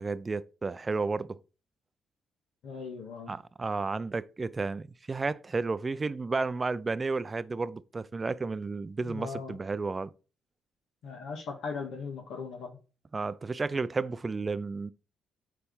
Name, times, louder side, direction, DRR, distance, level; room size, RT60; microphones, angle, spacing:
voice 1, 0.0-1.4 3.3-10.1 13.1-14.9, right 3 dB, 30° right, 0.6 m, -32 dB
voice 2, 2.6-3.4 9.0-9.6 11.0-12.8, left 5 dB, 70° left, 1.7 m, -38 dB
9.8 x 3.4 x 5.5 m
supercardioid pair, 65°, 0 cm